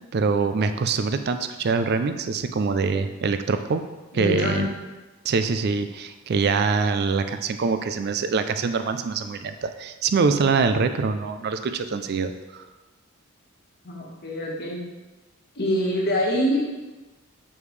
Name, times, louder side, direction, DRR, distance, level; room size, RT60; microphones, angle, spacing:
voice 1, 0.1-3.9 4.1-4.7 5.2-12.7, right 4 dB, 45° right, 9 dB, 0.4 m, -24 dB
voice 2, 4.1-4.7 13.8-14.8 15.5-16.8, equal, 45° left, -2 dB, 1.3 m, -25 dB
7.1 x 4.9 x 3.2 m, 1.2 s
head